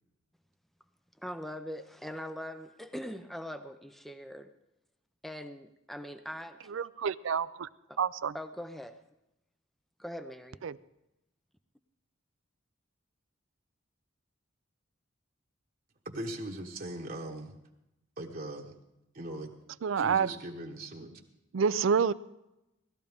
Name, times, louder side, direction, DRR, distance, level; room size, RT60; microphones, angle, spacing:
voice 1, 1.2-4.5 5.2-6.8 7.9-8.0 8.3-9.0 10.0-10.6, equal, ahead, 0.5 m, -42 dB
voice 2, 6.7-7.7 8.0-8.3 10.6-10.8 19.8-20.3 21.5-22.1, right 6 dB, 70° right, 0.4 m, -28 dB
voice 3, 16.0-17.5 18.2-18.7 19.1-19.5 20.0-21.2, right 1 dB, 45° right, 1.1 m, -40 dB
18.0 x 13.0 x 3.5 m
head